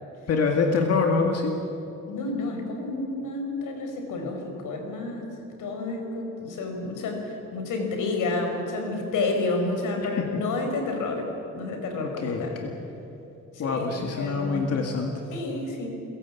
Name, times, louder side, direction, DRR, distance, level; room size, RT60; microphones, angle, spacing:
voice 1, 0.3-1.5 10.2-10.3 12.0-12.8 13.6-15.1, left 4 dB, 55° left, 3 dB, 2.0 m, -25 dB
voice 2, 2.1-11.3 11.5-12.6 13.5-14.7 15.3-15.9, left 3 dB, 85° left, 4 dB, 4.8 m, -30 dB
30.0 x 16.5 x 8.4 m, 2.9 s
cardioid pair, 175°, 31 cm